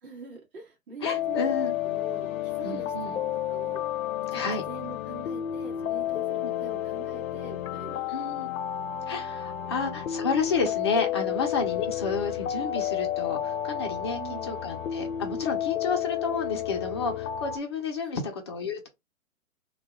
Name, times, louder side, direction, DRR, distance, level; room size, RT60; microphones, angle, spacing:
voice 1, 0.0-1.4 1.8-3.8 4.3-8.1 9.8-10.0 14.1-14.5 18.0-18.3, right 4 dB, 40° right, 1.5 m, -44 dB
sound 1, 1.0-17.6, left 11 dB, 70° left, 0.5 m, -31 dB
voice 2, 1.0-1.8 2.6-3.2 4.3-4.6 6.4-6.5 8.1-8.5 9.1-18.9, left 4 dB, 20° left, 0.4 m, -31 dB
2.8 x 2.2 x 3.3 m
hypercardioid pair, 130°, 42 cm